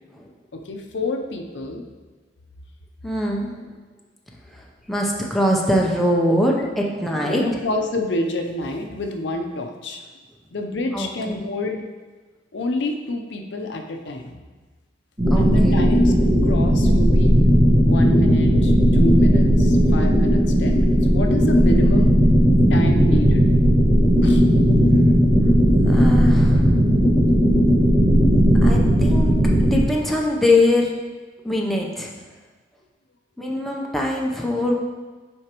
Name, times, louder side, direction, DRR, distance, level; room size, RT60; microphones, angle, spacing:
voice 1, 0.5-1.8 7.1-10.0 10.5-11.8 12.5-14.4 15.3-17.5 17.8-22.2 22.7-23.4 24.2-24.4, left 1 dB, 70° left, 4 dB, 0.6 m, -28 dB
voice 2, 3.0-3.5 4.5-7.4 10.9-11.4 15.3-15.8 24.1-24.4 24.6-24.7 25.9-26.9 28.6-29.3 29.7-30.9 31.4-32.1 33.4-34.8, left 1 dB, ahead, -2 dB, 0.6 m, -23 dB
sound 1, 15.2-29.8, equal, 30° right, 1.4 m, -16 dB
7.8 x 5.0 x 3.0 m, 1.3 s
head